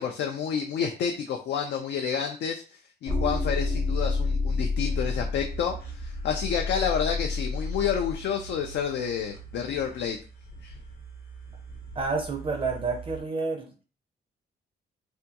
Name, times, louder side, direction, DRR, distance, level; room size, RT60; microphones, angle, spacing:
voice 1, 0.0-10.2 10.6-10.8, left 7 dB, 70° left, 3 dB, 0.4 m, -29 dB
sound 1, 3.1-8.2, left 3 dB, 20° left, 0.6 m, -29 dB
sound 2, 4.9-13.2, right 6 dB, 55° left, 0.9 m, -44 dB
voice 2, 12.0-13.7, right 4 dB, 30° right, 2 dB, 0.4 m, -29 dB
3.4 x 2.2 x 2.8 m, 0.37 s
wide cardioid pair, 170°, 18 cm